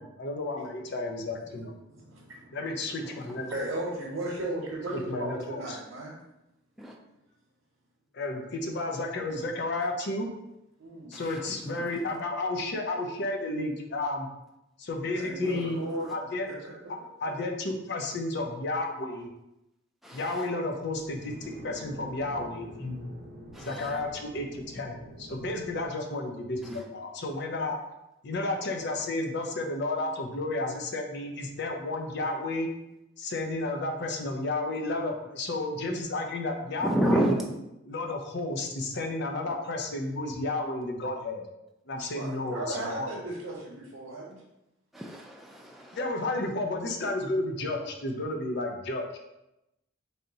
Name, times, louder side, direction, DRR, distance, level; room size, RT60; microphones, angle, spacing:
voice 1, 0.2-1.7 2.5-3.5 5.1-5.8 8.1-10.3 11.1-14.3 14.8-15.8 16.1-16.5 17.2-19.3 20.1-23.1 23.6-27.8 28.2-32.7 33.2-37.3 37.9-41.4 41.9-43.1 45.9-49.2, left 2 dB, 55° left, 3 dB, 0.6 m, -32 dB
voice 2, 2.1-2.6 2.9-3.0 3.5-6.1 10.8-11.1 15.2-16.1 16.5-16.7 17.2-17.3 25.7-25.8 42.1-44.4, right 1 dB, 75° right, -4 dB, 0.9 m, -36 dB
voice 3, 3.0-3.5 6.8-7.0 11.1-12.2 15.4-15.6 16.0-16.1 20.0-20.5 23.5-24.0 26.6-26.8 36.8-37.6 44.9-46.0, equal, ahead, -1 dB, 0.3 m, -31 dB
sound 1, 21.0-25.9, right 1 dB, 50° right, 0.6 m, -46 dB
3.3 x 2.7 x 3.9 m, 0.90 s
head